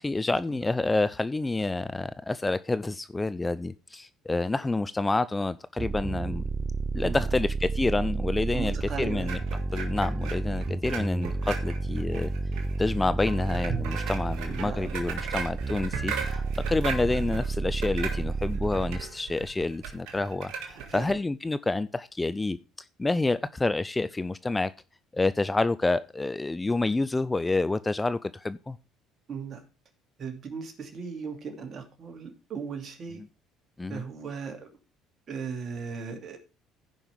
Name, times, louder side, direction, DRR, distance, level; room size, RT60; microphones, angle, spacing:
voice 1, 0.0-6.4 6.9-9.4 9.7-12.3 12.8-22.6 23.0-24.7 25.1-28.8 33.2-33.3 33.8-34.0, left 2 dB, 15° left, 0.5 m, -28 dB
sound 1, 5.8-19.0, right 3 dB, 25° right, 0.6 m, -31 dB
voice 2, 8.5-9.3 14.5-14.9 20.9-21.2 29.3-29.6 30.2-33.2 33.9-34.7 35.3-36.4, right 5 dB, 45° right, 2.6 m, -37 dB
sound 2, 9.2-21.1, right 6 dB, 70° right, 1.8 m, -38 dB
16.0 x 5.4 x 3.5 m
hypercardioid pair, 70°, 0 cm